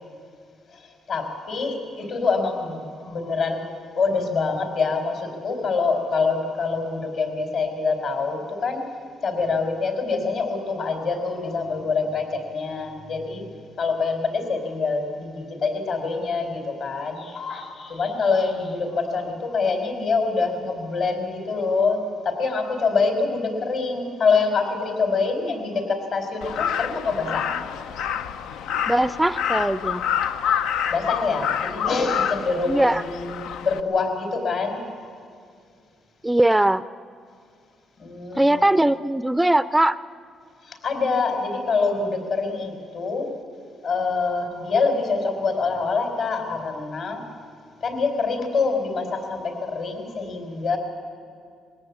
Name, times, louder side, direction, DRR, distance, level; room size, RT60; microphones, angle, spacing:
voice 1, 0.7-3.7 4.0-8.9 9.2-13.4 13.8-27.5 30.4-35.1 38.0-38.7 40.6-43.3 43.8-47.2 47.8-50.8, left 4 dB, 65° left, 4 dB, 4.4 m, -25 dB
Crow, 26.4-33.8, left 8 dB, 90° left, 0.6 m, -27 dB
voice 2, 28.9-30.0 32.7-33.0 36.2-36.8 38.4-40.0, right 1 dB, 10° right, 15 dB, 0.4 m, -20 dB
21.0 x 17.0 x 8.5 m, 2.3 s
cardioid pair, 90°, 0 cm